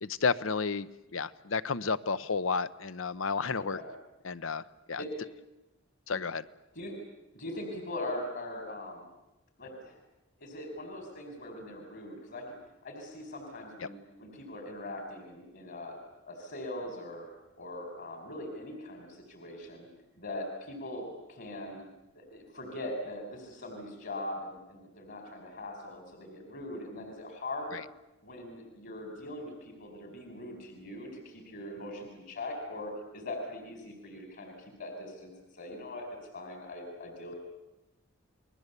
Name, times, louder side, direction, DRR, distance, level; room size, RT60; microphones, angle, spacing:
voice 1, 0.0-3.8 4.2-5.0 6.1-6.5 13.8-13.9 27.7-27.8, left 5 dB, 80° left, 16 dB, 0.9 m, -32 dB
voice 2, 7.3-9.1 9.6-10.0 10.4-12.6 12.8-16.0 16.2-17.3 17.6-19.9 20.1-21.8 22.1-27.8 28.2-36.1 36.3-37.4, left 1 dB, 60° left, 3 dB, 4.6 m, -41 dB
30.0 x 21.5 x 8.3 m, 0.95 s
head